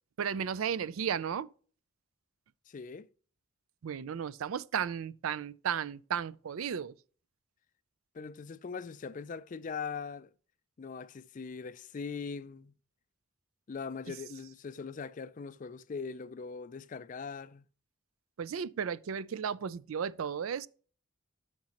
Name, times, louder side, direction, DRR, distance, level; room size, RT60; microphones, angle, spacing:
voice 1, 0.2-1.5 3.8-6.9 18.4-20.7, right 7 dB, 90° right, 0.4 m, -34 dB
voice 2, 2.7-3.1 8.1-10.3 10.8-12.7 13.7-17.6, left 5 dB, 40° left, 0.3 m, -41 dB
11.5 x 5.9 x 2.9 m
head